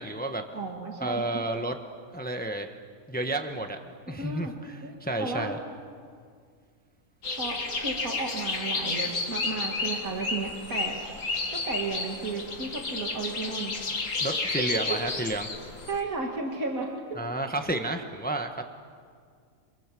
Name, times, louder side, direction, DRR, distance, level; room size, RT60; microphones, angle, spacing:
voice 1, 0.0-0.4 1.0-1.8 2.1-2.7 3.1-3.8 4.1-5.6 14.2-15.5 17.2-18.6, right 2 dB, 5° left, 5 dB, 1.3 m, -31 dB
voice 2, 0.5-1.3 4.0-4.5 4.8-5.5 7.3-11.0 11.5-13.7 14.3-14.4 14.7-15.3 15.9-17.2, right 3 dB, 75° right, 0 dB, 2.7 m, -34 dB
sound 1, 7.2-16.0, left 3 dB, 65° left, 2.3 m, -32 dB
28.0 x 25.5 x 7.7 m, 2.1 s
omnidirectional pair, 1.5 m